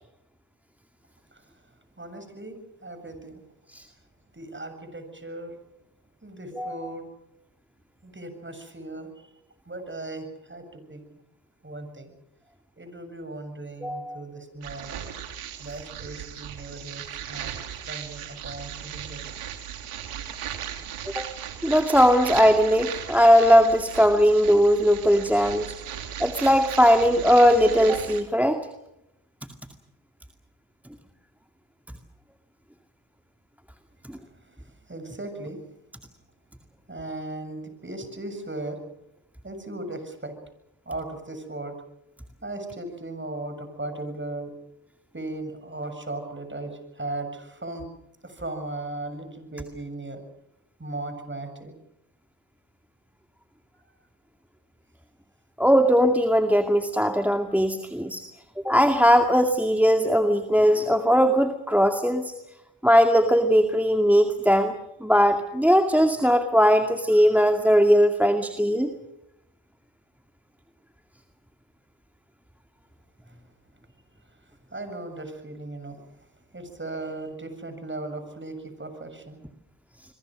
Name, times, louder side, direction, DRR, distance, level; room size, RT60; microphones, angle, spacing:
voice 1, 2.0-3.4 4.3-5.6 6.2-7.1 8.0-9.3 9.7-11.0 11.6-12.1 12.8-15.1 15.6-19.2 34.3-35.6 36.9-38.8 39.4-40.4 40.9-41.8 42.4-44.5 45.1-47.9 48.2-50.2 50.8-51.8 73.3-73.4 74.3-76.1 76.5-79.4, right 2 dB, 25° right, 8 dB, 7.3 m, -37 dB
voice 2, 13.8-14.2 21.1-21.3 21.6-25.7 26.2-28.6 55.6-58.3 58.6-62.3 62.8-64.7 65.0-68.9, equal, 5° right, 6 dB, 2.2 m, -19 dB
sound 1, 14.6-28.2, right 10 dB, 80° right, 3.0 m, -37 dB
26.5 x 22.5 x 6.4 m, 0.83 s
supercardioid pair, 50°, 50 cm